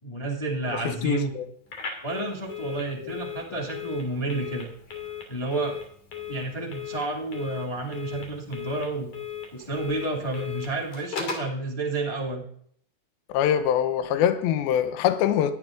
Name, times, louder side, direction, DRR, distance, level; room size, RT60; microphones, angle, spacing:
voice 1, 0.0-1.4 2.0-4.7 5.3-5.8 6.3-9.1 9.5-12.4, right 2 dB, 15° left, 1.0 m, -30 dB
voice 2, 0.7-1.5 13.3-15.5, left 9 dB, 80° left, 2.7 m, -24 dB
Telephone, 1.7-11.5, left 7 dB, 50° left, 3.8 m, -37 dB
17.5 x 11.0 x 3.7 m
omnidirectional pair, 4.3 m